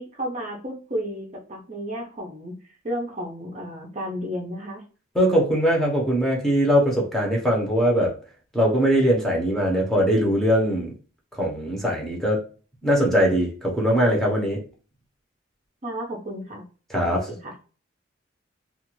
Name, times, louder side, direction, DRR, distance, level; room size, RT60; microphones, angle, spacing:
voice 1, 0.0-2.5 2.8-4.8 15.8-16.6 16.9-17.5, equal, 35° right, 0 dB, 0.6 m, -32 dB
voice 2, 5.1-8.1 8.5-10.9 11.4-12.5 12.8-14.6 16.9-17.3, equal, ahead, -2 dB, 0.8 m, -21 dB
2.5 x 2.4 x 3.0 m, 0.37 s
head